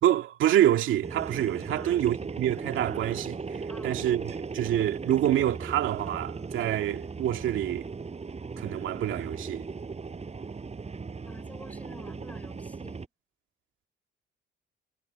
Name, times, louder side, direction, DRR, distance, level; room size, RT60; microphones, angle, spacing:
voice 1, 0.0-7.9 8.6-9.7, right 12 dB, 80° right, 2.2 m, -27 dB
sound 1, 1.0-13.1, right 4 dB, 30° right, 7.9 m, -37 dB
voice 2, 1.7-2.0 3.7-4.0 11.2-13.1, left 1 dB, 5° left, 6.5 m, -49 dB
cardioid pair, 90°, 20 cm